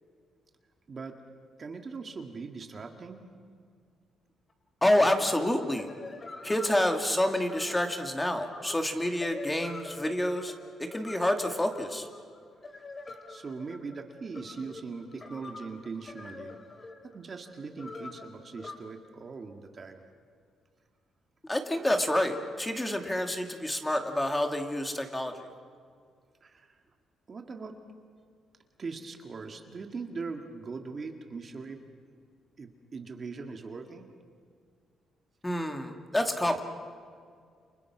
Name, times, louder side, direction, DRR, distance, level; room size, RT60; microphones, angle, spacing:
voice 1, 0.9-1.2 1.6-3.3 13.3-20.0 26.4-26.8 27.3-27.8 28.8-31.8 32.6-34.1, right 4 dB, 35° right, 4 dB, 2.0 m, -41 dB
sound 1, 4.5-4.6 4.9-18.8, left 3 dB, 25° left, 3.1 m, -45 dB
voice 2, 4.8-5.9 6.4-10.5 10.8-12.1 21.5-25.5 35.4-36.6, left 1 dB, 10° left, 4 dB, 2.3 m, -28 dB
29.5 x 29.0 x 6.1 m, 2.1 s
cardioid pair, 140°, 0 cm